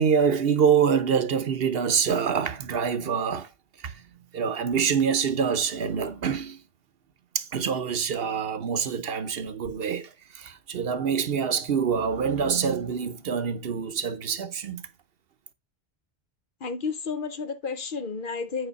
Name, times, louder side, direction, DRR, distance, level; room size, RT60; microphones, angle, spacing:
voice 1, 0.0-3.5 3.8-4.0 4.3-6.6 7.3-14.8, right 7 dB, 70° right, 1.0 m, -25 dB
voice 2, 16.6-18.7, left 5 dB, 60° left, 0.9 m, -31 dB
8.8 x 4.8 x 4.0 m
omnidirectional pair, 1.0 m